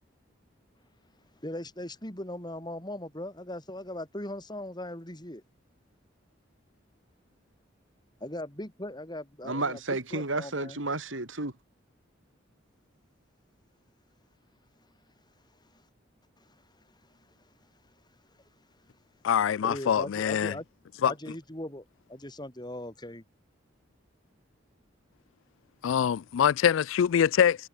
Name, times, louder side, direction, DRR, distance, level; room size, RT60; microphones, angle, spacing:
voice 1, 1.4-5.4 8.2-9.8 10.1-10.8 19.6-20.6 21.0-21.8 22.1-23.2, left 1 dB, 20° left, 6.9 m, -39 dB
voice 2, 9.4-11.5, right 2 dB, 80° right, 4.4 m, -31 dB
voice 3, 19.2-20.5 21.0-21.1 25.8-27.7, left 8 dB, 80° left, 0.4 m, -24 dB
head